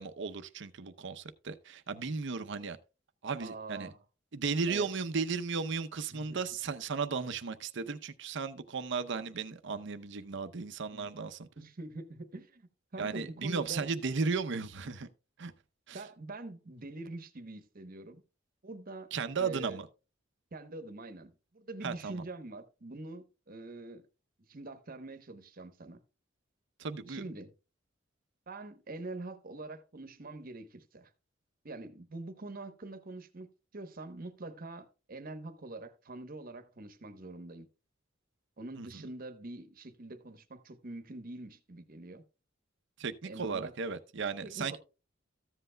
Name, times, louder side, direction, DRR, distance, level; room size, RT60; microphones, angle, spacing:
voice 1, 0.0-2.8 3.2-3.9 4.3-11.5 13.0-15.1 15.4-15.5 15.9-16.0 19.1-19.9 21.8-22.2 26.8-27.2 38.8-39.1 43.0-44.8, right 5 dB, 65° right, 0.7 m, -35 dB
voice 2, 3.4-4.0 4.7-4.9 6.1-6.4 10.9-11.1 11.6-13.9 15.9-18.2 18.6-19.1 19.4-19.8 20.5-24.0 24.5-26.0 27.1-27.5 28.5-31.1 31.6-37.7 38.6-42.2 43.3-43.8 44.4-44.8, right 2 dB, 45° right, 1.0 m, -45 dB
14.0 x 7.8 x 2.2 m
head